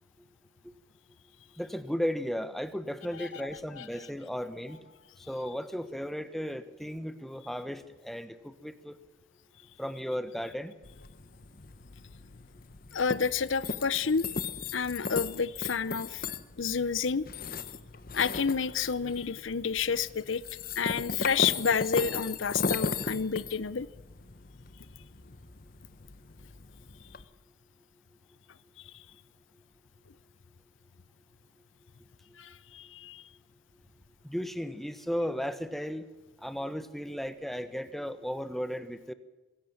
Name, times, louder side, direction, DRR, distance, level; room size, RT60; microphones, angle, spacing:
voice 1, 1.6-4.8 5.3-8.9 9.8-10.7 34.2-36.1 36.4-39.1, equal, ahead, 11 dB, 1.1 m, -35 dB
sound 1, 10.8-27.2, left 4 dB, 45° left, 1.0 m, -37 dB
voice 2, 12.9-14.3 14.7-16.3 16.6-17.2 18.1-20.4 20.8-23.9 28.8-29.0 32.4-33.2, left 6 dB, 80° left, 17 dB, 0.7 m, -30 dB
22.5 x 16.0 x 7.2 m, 1.1 s
head